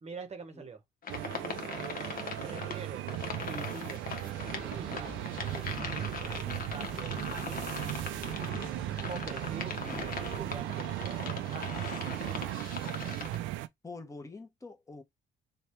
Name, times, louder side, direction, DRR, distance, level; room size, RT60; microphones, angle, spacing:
voice 1, 0.0-0.8 2.4-8.0 9.1-12.2, right 5 dB, 35° right, 0.9 m, -46 dB
sound 1, 1.0-13.4, left 5 dB, 50° left, 0.9 m, -41 dB
sound 2, 1.1-13.7, right 15 dB, 85° right, 0.4 m, -37 dB
voice 2, 1.3-1.7 13.8-15.0, left 3 dB, 15° left, 1.0 m, -46 dB
sound 3, 4.5-10.7, right 1 dB, 5° right, 0.4 m, -46 dB
3.2 x 2.3 x 4.3 m
cardioid pair, 85°, 19 cm